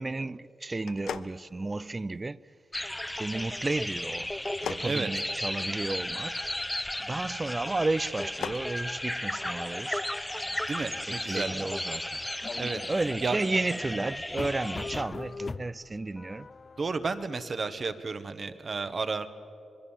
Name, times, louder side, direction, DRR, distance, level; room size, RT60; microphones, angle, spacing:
voice 1, 0.0-2.4 3.1-6.4 7.0-10.0 11.1-12.2 12.9-16.5, right 2 dB, 30° right, 0.4 m, -32 dB
sound 1, 0.8-2.2 4.4-6.0 8.0-8.7, left 8 dB, 85° left, 0.6 m, -39 dB
sound 2, 2.7-15.0, left 1 dB, 10° left, 0.8 m, -35 dB
voice 2, 10.7-11.7 12.5-12.8 13.2-13.4 16.8-19.3, right 4 dB, 50° right, 1.3 m, -32 dB
sound 3, 12.4-17.2, left 4 dB, 45° left, 0.5 m, -41 dB
25.5 x 21.0 x 7.3 m
cardioid pair, 65°, 0 cm